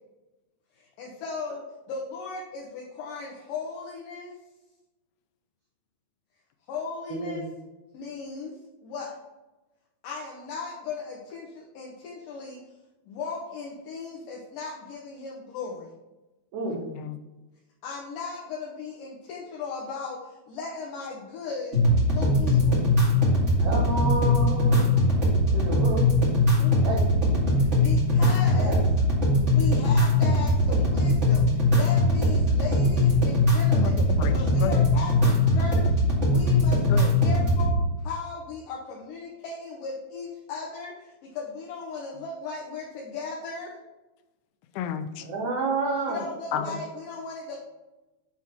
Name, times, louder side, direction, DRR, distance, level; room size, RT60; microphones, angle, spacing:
voice 1, 0.8-4.3 6.7-7.4 7.9-8.5 8.8-9.2 10.0-12.6 13.1-15.9 17.8-21.8 22.1-22.9 26.6-26.9 27.5-28.7 29.5-34.0 34.3-36.0 36.3-43.8 46.1-47.6, left 4 dB, 70° left, -3 dB, 2.2 m, -37 dB
voice 2, 7.1-7.5 16.5-16.8 23.6-24.8 25.5-26.1 26.8-27.5 28.5-28.8 45.2-46.2 46.5-46.7, right 3 dB, 70° right, -3 dB, 2.0 m, -30 dB
voice 3, 16.7-17.2 33.8-34.3 34.6-34.9 36.9-37.1 44.8-45.2 46.5-46.8, left 8 dB, 90° left, 9 dB, 2.6 m, -31 dB
sound 1, 21.7-37.7, left 1 dB, 25° right, 1.5 m, -21 dB
7.4 x 3.5 x 5.7 m, 1.1 s
omnidirectional pair, 4.5 m